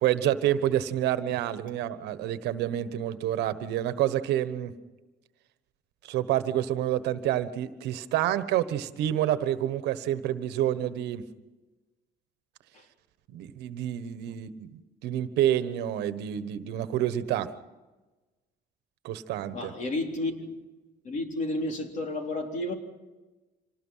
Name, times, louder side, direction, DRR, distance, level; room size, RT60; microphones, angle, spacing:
voice 1, 0.0-4.7 6.1-11.2 13.3-17.5 19.0-19.7, right 12 dB, 85° right, 1.3 m, -28 dB
voice 2, 19.5-20.6 21.0-22.7, left 2 dB, 45° left, 3.7 m, -31 dB
26.5 x 19.0 x 5.7 m
cardioid pair, 110°, 17 cm